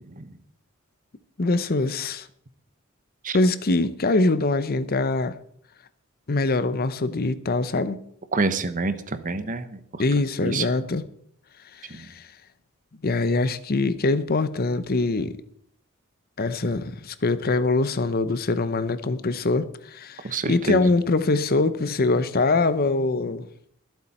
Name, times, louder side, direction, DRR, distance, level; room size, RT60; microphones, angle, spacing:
voice 1, 1.4-2.3 3.3-5.4 6.3-8.0 10.0-11.0 11.7-12.3 13.0-15.4 16.4-23.5, left 3 dB, 45° left, 0.7 m, -23 dB
voice 2, 8.3-10.0 10.4-10.7 11.9-12.1 20.2-20.9, right 3 dB, 40° right, 1.1 m, -27 dB
23.0 x 8.2 x 4.3 m
head